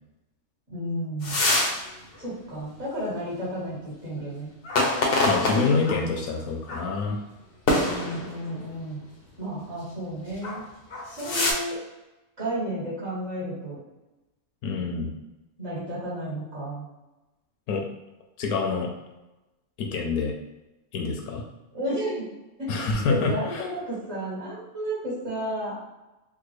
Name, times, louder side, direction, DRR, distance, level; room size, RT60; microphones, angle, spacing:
voice 1, 0.7-1.4 2.2-4.5 7.8-9.0 9.4-10.6 11.1-11.8 12.4-13.8 15.6-16.8 21.7-22.3 22.6-22.7 23.1-25.8, equal, 45° right, -8 dB, 1.8 m, -32 dB
sound 1, 1.2-1.8 2.2-2.3 4.6-6.0 6.7-6.9 7.7-8.5 10.3-10.6 10.9-11.5, left 2 dB, 60° left, 0.6 m, -25 dB
voice 2, 5.2-7.2 14.6-15.1 17.7-17.8 18.4-18.9 19.8-20.3 20.9-21.4 22.7-23.6, left 4 dB, 75° left, 2 dB, 1.0 m, -26 dB
3.7 x 2.1 x 3.1 m, 1.0 s
omnidirectional pair, 1.6 m